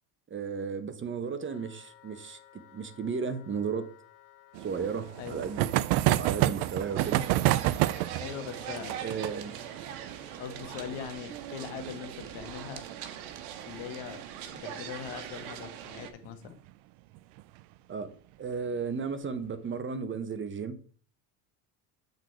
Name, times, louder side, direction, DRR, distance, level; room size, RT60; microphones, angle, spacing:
voice 1, 0.3-3.9 4.6-5.7 6.1-7.3 9.0-9.5 17.9-18.1 18.4-20.8, right 5 dB, 30° right, 11 dB, 0.9 m, -34 dB
Wind instrument woodwind instrument, 1.4-10.8, left 12 dB, 45° left, 1.3 m, -57 dB
sound 1, 4.5-13.8 14.0-14.1 14.4-14.5 14.7-14.8 16.2-16.5 17.2-17.6, right 16 dB, 70° right, 0.5 m, -30 dB
sound 2, 7.0-16.1, right 9 dB, 85° right, 1.1 m, -41 dB
voice 2, 8.2-9.0 10.4-12.8 13.6-14.2 14.5-16.5, left 9 dB, 80° left, 8 dB, 1.4 m, -41 dB
7.9 x 4.0 x 4.5 m, 0.43 s
supercardioid pair, 100°, 43 cm